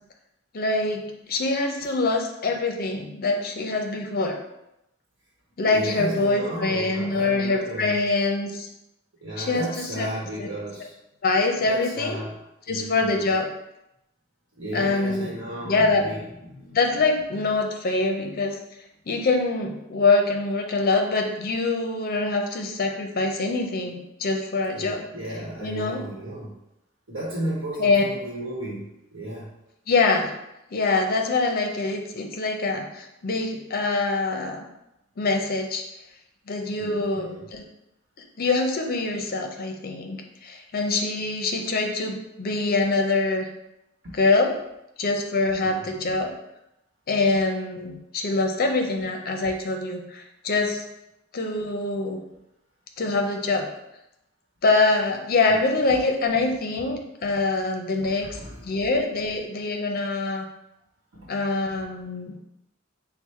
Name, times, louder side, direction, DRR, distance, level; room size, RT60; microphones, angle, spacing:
voice 1, 0.5-4.4 5.6-8.7 9.4-10.1 10.4-10.5 11.2-12.2 12.7-13.5 14.7-15.4 15.6-16.1 16.7-18.6 19.1-25.1 25.6-26.1 27.8-28.0 29.9-30.3 30.7-34.7 35.2-35.8 36.5-37.6 38.2-40.2 40.4-43.5 44.1-44.6 45.0-46.4 47.1-50.9 51.3-52.2 53.0-53.7 54.6-60.5 61.3-62.3, left 3 dB, 50° left, 3 dB, 0.6 m, -24 dB
voice 2, 5.7-8.0 9.2-10.9 11.6-12.3 12.7-13.3 14.6-16.8 24.7-26.5 27.1-29.5 36.8-37.5 44.0-44.1 45.6-46.0 58.2-58.7 61.1-61.3, right 1 dB, 85° right, -5 dB, 1.0 m, -34 dB
4.5 x 2.1 x 4.2 m, 0.86 s
head